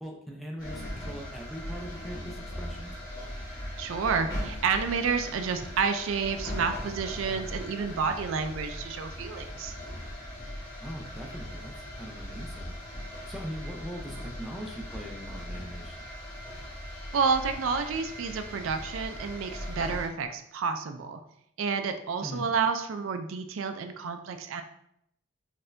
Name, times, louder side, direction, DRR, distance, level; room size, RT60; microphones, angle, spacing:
voice 1, 0.0-3.0 10.8-12.8 13.3-16.0 22.2-22.5, equal, ahead, -1 dB, 0.5 m, -41 dB
sound 1, 0.6-20.1, equal, 20° left, 1.4 m, -39 dB
voice 2, 3.8-9.7 17.1-21.2 21.6-24.6, right 5 dB, 75° right, 7 dB, 0.4 m, -30 dB
4.2 x 3.3 x 2.5 m, 0.73 s
head